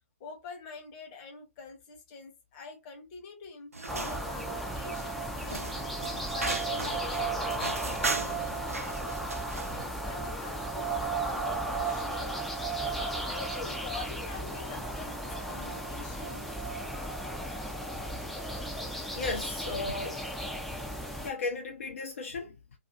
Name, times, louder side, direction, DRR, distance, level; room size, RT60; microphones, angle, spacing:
voice 1, 0.2-5.7 6.2-7.9 8.4-9.2 9.7-12.4 12.9-16.5, left 5 dB, 30° left, 0.8 m, -45 dB
sound 1, 3.7-9.9, right 3 dB, 85° right, 0.5 m, -38 dB
sound 2, 3.9-21.3, right 2 dB, ahead, 0.3 m, -35 dB
voice 2, 19.2-20.5 21.2-22.5, left 3 dB, 65° left, 0.5 m, -35 dB
2.5 x 2.3 x 2.4 m
figure-of-eight pair, 125°, 8 cm